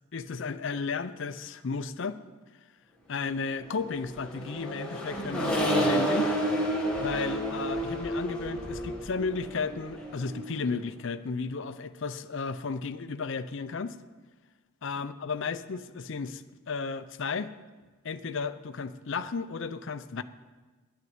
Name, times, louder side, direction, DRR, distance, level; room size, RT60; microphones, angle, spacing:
voice 1, 0.1-2.2 3.1-6.3 7.0-14.0 14.8-17.5 18.0-20.2, left 4 dB, 55° left, 11 dB, 0.5 m, -34 dB
Accelerating revving vroom, 3.9-10.6, equal, 5° left, 1.7 m, -30 dB
9.5 x 8.2 x 9.4 m, 1.3 s
head